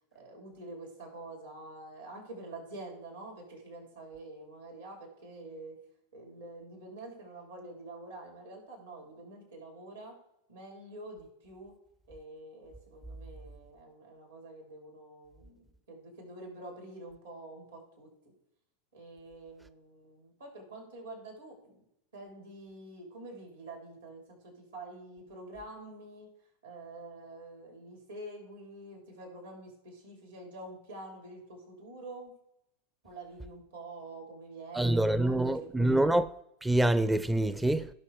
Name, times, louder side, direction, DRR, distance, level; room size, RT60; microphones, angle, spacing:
voice 1, 0.1-5.8 6.1-10.2 10.5-11.7 12.1-18.3 18.9-21.8 22.1-26.3 26.6-32.3 33.0-36.1, right 2 dB, 75° right, 4.4 m, -47 dB
voice 2, 34.7-36.3 36.6-37.9, right 1 dB, 5° right, 0.4 m, -26 dB
17.0 x 6.2 x 3.6 m
figure-of-eight pair, 85°, 0 cm